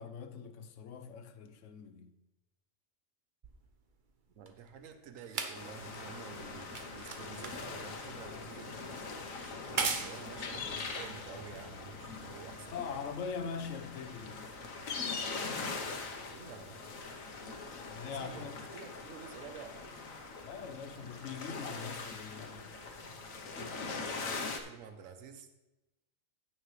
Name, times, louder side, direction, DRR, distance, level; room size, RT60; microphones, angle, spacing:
voice 1, 0.0-2.1 12.7-14.5 17.8-18.6 20.4-22.7, left 6 dB, 70° left, 1.1 m, -42 dB
sound 1, 3.4-12.0 12.9-13.0, right 5 dB, 45° right, 0.9 m, -41 dB
voice 2, 4.4-8.9 9.4-13.0 16.3-16.8 18.1-19.9 24.2-25.5, right 6 dB, 80° right, 1.2 m, -50 dB
sound 2, 5.5-24.6, left 4 dB, 85° left, 1.4 m, -42 dB
16.0 x 6.0 x 3.2 m
omnidirectional pair, 1.4 m